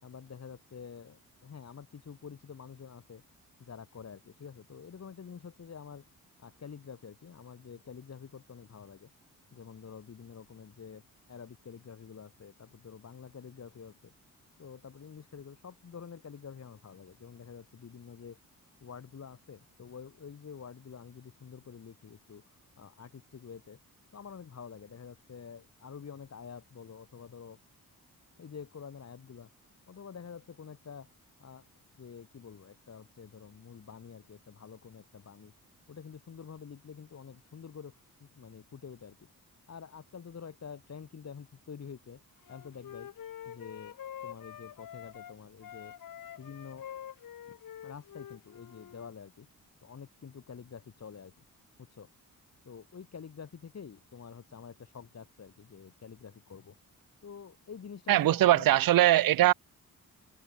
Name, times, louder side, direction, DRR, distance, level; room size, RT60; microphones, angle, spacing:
voice 1, 0.0-3.2 3.6-6.0 6.4-9.1 9.5-11.0 11.3-14.1 14.6-18.4 18.8-22.4 22.8-23.8 24.1-27.6 28.4-29.5 29.9-31.1 31.4-31.7 31.9-35.5 35.9-39.3 39.7-42.2 42.5-43.1 43.5-44.0 44.2-45.9 46.4-46.9 47.5-47.6 47.8-49.5 49.8-51.3 51.8-52.1 52.6-56.8 57.2-58.8, left 6 dB, 50° left, 5.4 m, -47 dB
Wind instrument woodwind instrument, 42.5-45.4 45.6-49.1, left 10 dB, 75° left, 2.9 m, -46 dB
voice 2, 58.1-59.5, right 14 dB, 75° right, 0.8 m, -21 dB
cardioid pair, 110°, 34 cm